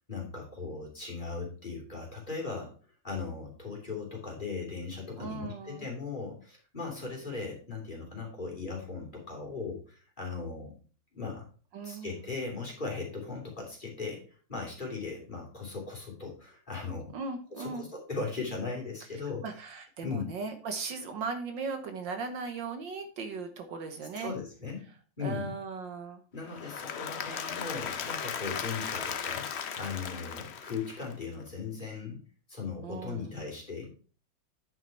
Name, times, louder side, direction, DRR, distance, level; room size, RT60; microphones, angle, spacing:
voice 1, 0.1-2.7 3.0-10.7 11.1-11.4 11.8-17.1 17.5-19.4 20.0-20.3 24.2-24.9 25.2-25.6 26.3-29.5 29.8-32.2 32.5-34.0, left 4 dB, 25° left, -2 dB, 3.0 m, -38 dB
voice 2, 5.2-5.9 11.7-12.3 17.1-17.8 19.4-24.3 25.2-26.2 32.8-33.4, right 4 dB, 65° right, 6 dB, 1.7 m, -38 dB
Applause / Crowd, 26.4-31.4, left 7 dB, 70° left, 0.6 m, -37 dB
9.3 x 6.0 x 4.5 m, 0.39 s
omnidirectional pair, 2.2 m